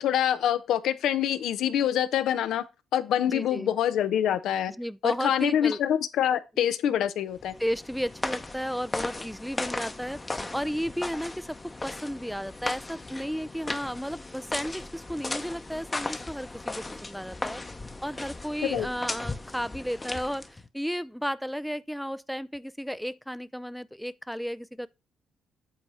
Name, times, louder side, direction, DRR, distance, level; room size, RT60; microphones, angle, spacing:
voice 1, 0.0-2.6 2.9-4.7 5.0-7.5 18.7-18.9, left 10 dB, 80° left, 0.6 m, -25 dB
voice 2, 3.3-3.7 4.8-5.8 7.6-10.2 10.5-17.6 18.0-24.9, equal, ahead, 0.4 m, -33 dB
sound 1, 7.4-20.7, left 2 dB, 20° left, 0.8 m, -37 dB
8.4 x 4.2 x 4.8 m
cardioid pair, 85°, 0 cm